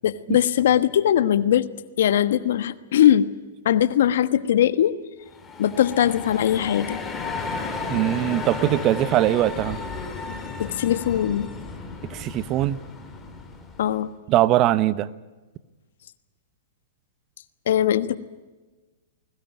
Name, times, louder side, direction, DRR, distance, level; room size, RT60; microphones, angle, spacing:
voice 1, 0.0-1.7 2.0-3.3 3.6-4.9 5.6-7.0 10.6-11.5 13.8-14.1 17.7-18.2, left 10 dB, 70° left, 14 dB, 1.3 m, -20 dB
sound 1, 5.3-14.0, left 4 dB, 15° left, 4.0 m, -33 dB
voice 2, 7.9-9.8 12.1-12.8 14.3-15.1, right 14 dB, 35° right, 17 dB, 0.9 m, -21 dB
21.5 x 19.5 x 9.1 m, 1.2 s
hypercardioid pair, 125°, 0 cm